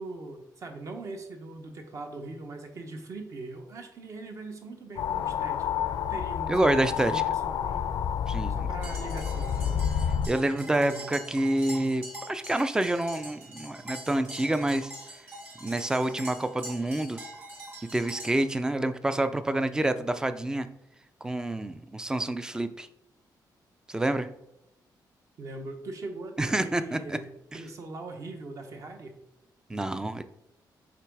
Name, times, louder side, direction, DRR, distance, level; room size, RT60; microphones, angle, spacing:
voice 1, 0.0-8.0 8.5-10.0 10.6-11.1 25.4-29.2, right 2 dB, 45° right, 5 dB, 1.0 m, -41 dB
sound 1, 5.0-10.3, left 8 dB, 70° left, 0.4 m, -29 dB
voice 2, 6.5-7.2 8.3-8.7 10.3-14.9 15.6-17.2 17.9-20.7 21.2-22.9 23.9-24.3 26.4-27.2 27.5-27.6 29.7-30.2, right 1 dB, 10° right, 11 dB, 0.4 m, -28 dB
sound 2, 8.8-18.4, right 1 dB, 25° right, 1.9 m, -44 dB
5.9 x 3.8 x 4.7 m, 0.87 s
wide cardioid pair, 155°, 7 cm